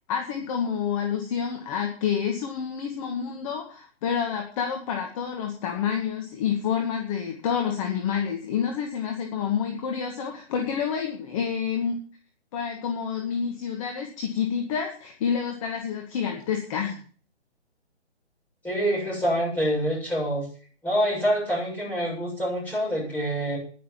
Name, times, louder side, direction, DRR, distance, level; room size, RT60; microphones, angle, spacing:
voice 1, 0.1-12.0 12.5-17.0, left 7 dB, 30° left, 3 dB, 2.0 m, -28 dB
voice 2, 18.6-20.4 20.8-23.6, equal, 5° left, -6 dB, 7.2 m, -26 dB
11.0 x 10.0 x 7.6 m, 0.43 s
hypercardioid pair, 150°, 34 cm